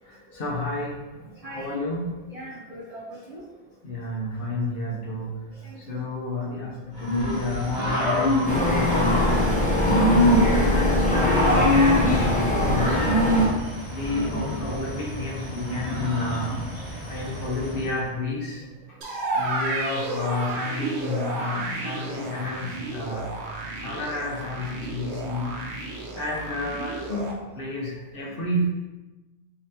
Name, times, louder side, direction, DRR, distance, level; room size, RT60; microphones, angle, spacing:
voice 1, 0.1-1.0 1.2-2.1 3.8-5.4 5.9-9.6 10.0-13.0 13.9-16.7 17.1-18.6 19.3-23.3 23.8-25.6 26.1-27.3 27.5-28.7, left 2 dB, 60° left, -3 dB, 0.8 m, -30 dB
voice 2, 1.3-1.8 2.3-3.4 4.9-5.0 5.5-6.0 6.9-7.0 15.7-15.9 16.7-17.3 18.9-19.0 19.3-19.5 20.3-20.5 24.6-24.7 25.7-26.2, right 1 dB, 40° right, -6 dB, 0.6 m, -43 dB
Growling / Cricket, 7.0-17.9, equal, 40° left, 1.8 m, -25 dB
sound 1, 8.4-13.5, left 1 dB, 10° left, 0.4 m, -22 dB
sound 2, 19.0-27.3, right 3 dB, 70° right, 0.9 m, -32 dB
4.0 x 2.6 x 2.7 m, 1.1 s
omnidirectional pair, 1.2 m